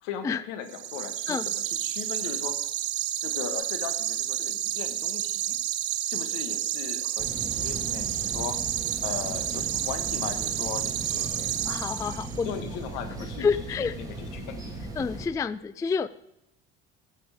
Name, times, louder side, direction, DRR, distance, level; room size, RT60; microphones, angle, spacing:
voice 1, 0.0-2.6 3.2-5.6 6.1-8.6 9.0-11.7 12.4-13.5 13.8-14.7, left 8 dB, 75° left, 8 dB, 1.7 m, -38 dB
sound 1, 0.7-12.5, right 12 dB, 60° right, 1.4 m, -30 dB
sound 2, 7.2-15.3, right 2 dB, 10° right, 2.6 m, -38 dB
voice 2, 11.7-12.5 13.4-14.0 15.0-16.1, left 5 dB, 10° left, 17 dB, 0.3 m, -28 dB
15.0 x 7.6 x 5.0 m, 0.80 s
supercardioid pair, 95°, 31 cm